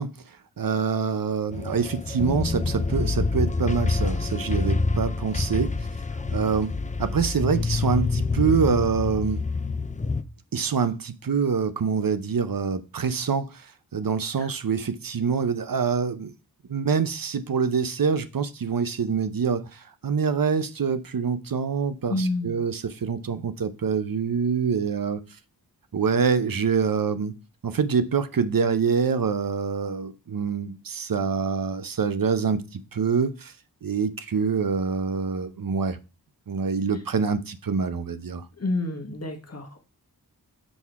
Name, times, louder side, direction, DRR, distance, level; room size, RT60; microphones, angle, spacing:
voice 1, 0.0-5.7 6.3-6.7 7.0-9.4 10.5-16.3 16.7-25.2 25.9-27.4 27.6-33.5 33.8-36.0 36.5-38.5, right 6 dB, 60° right, 0.7 m, -25 dB
sound 1, 1.5-10.2, left 3 dB, 20° left, 0.5 m, -27 dB
voice 2, 22.1-22.6 38.6-39.8, left 2 dB, 40° left, 1.3 m, -29 dB
6.3 x 3.6 x 4.6 m
wide cardioid pair, 65°, 38 cm